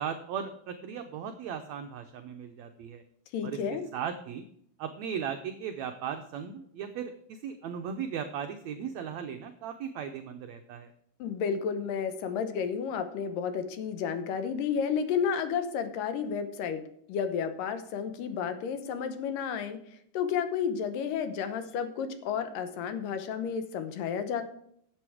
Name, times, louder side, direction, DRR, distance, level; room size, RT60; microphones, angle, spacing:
voice 1, 0.0-3.0 3.4-3.6 3.9-4.4 4.8-10.9, right 8 dB, 90° right, 6 dB, 1.5 m, -37 dB
voice 2, 3.3-3.9 11.2-16.8 17.1-19.8 20.1-24.4, left 7 dB, 75° left, 10 dB, 2.5 m, -31 dB
11.0 x 7.9 x 4.9 m, 0.68 s
omnidirectional pair, 4.1 m